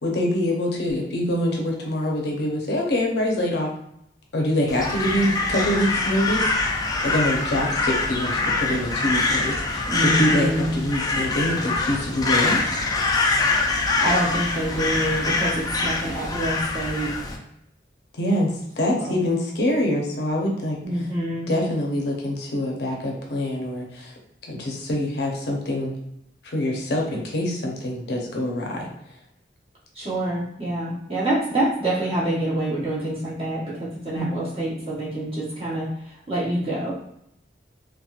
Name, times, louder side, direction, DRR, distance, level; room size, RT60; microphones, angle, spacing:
voice 1, 0.0-3.7 4.3-6.4 7.0-12.8 18.1-20.8 21.5-24.1 24.5-25.9 26.4-28.9 34.1-34.3, left 1 dB, 65° left, 0 dB, 0.6 m, -25 dB
Crow, 4.7-17.4, left 3 dB, 20° left, 0.3 m, -24 dB
voice 2, 9.9-10.7 13.7-17.1 18.9-19.2 20.8-21.5 29.9-36.9, right 1 dB, 35° right, -8 dB, 1.0 m, -26 dB
2.9 x 2.1 x 2.3 m, 0.76 s
head